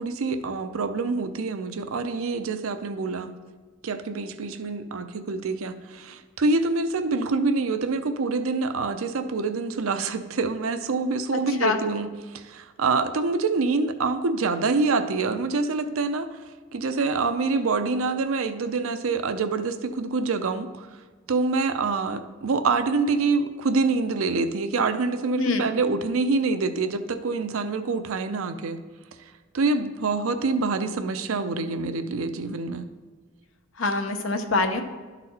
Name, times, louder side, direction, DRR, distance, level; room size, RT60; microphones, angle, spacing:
voice 1, 0.0-3.3 3.8-16.3 16.7-20.9 21.3-28.8 29.5-32.9, right 3 dB, 80° right, 9 dB, 0.6 m, -26 dB
voice 2, 11.3-11.8 25.4-25.7 33.8-34.8, left 3 dB, 70° left, 6 dB, 0.8 m, -25 dB
12.0 x 4.1 x 4.2 m, 1.4 s
head